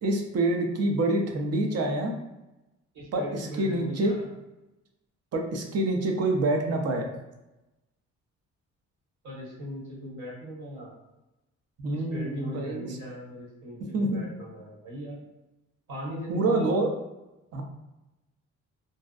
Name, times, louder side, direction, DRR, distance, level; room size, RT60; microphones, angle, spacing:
voice 1, 0.0-2.1 3.1-4.1 5.3-7.1 11.8-12.9 13.9-14.2 16.3-16.9 17.5-17.6, right 2 dB, 55° right, 2 dB, 0.6 m, -26 dB
voice 2, 2.9-4.3 9.2-10.9 11.9-15.2 15.9-16.7, equal, 75° right, -5 dB, 1.3 m, -39 dB
2.6 x 2.1 x 2.4 m, 0.98 s
cardioid pair, 90°, 30 cm